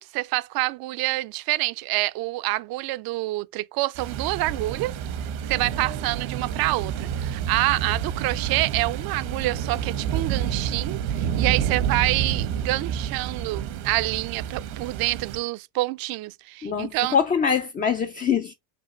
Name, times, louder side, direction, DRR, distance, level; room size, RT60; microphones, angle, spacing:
voice 1, 0.0-4.9 5.5-17.2, right 19 dB, 55° right, 0.5 m, -27 dB
sound 1, 3.9-15.4, right 9 dB, 85° right, 1.2 m, -29 dB
voice 2, 16.6-18.5, left 7 dB, 20° left, 0.4 m, -24 dB
5.9 x 2.4 x 3.1 m
supercardioid pair, 110°, 43 cm